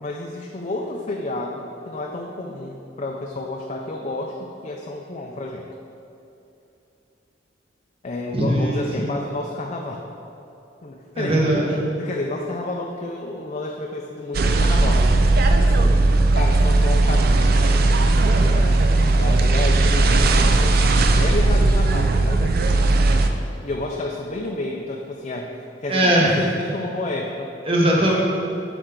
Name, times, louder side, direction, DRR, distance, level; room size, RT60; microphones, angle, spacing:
voice 1, 0.0-5.7 8.0-10.1 10.8-15.2 15.6-16.0 16.3-18.8 19.2-22.9 23.6-27.5, left 2 dB, 40° left, 0 dB, 0.5 m, -31 dB
voice 2, 8.3-9.1 11.1-11.7 25.9-26.6 27.6-28.1, right 1 dB, 30° right, -3 dB, 1.3 m, -20 dB
sound 1, 14.3-23.3, right 2 dB, 55° right, 0.5 m, -17 dB
11.0 x 4.5 x 3.8 m, 2.9 s
head